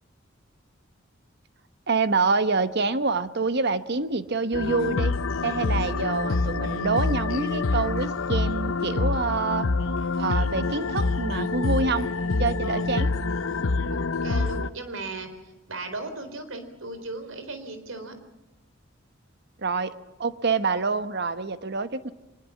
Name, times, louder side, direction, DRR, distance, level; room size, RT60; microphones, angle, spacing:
voice 1, 1.9-5.1 5.4-9.7 10.2-12.1 12.4-13.1 19.6-19.9 20.2-22.1, right 4 dB, 55° right, 12 dB, 1.2 m, -26 dB
sound 1, 4.5-14.7, left 3 dB, 85° left, 0.7 m, -26 dB
voice 2, 13.9-15.4 15.7-18.1, right 2 dB, 90° right, 9 dB, 4.1 m, -36 dB
24.0 x 21.0 x 7.4 m, 1.1 s
head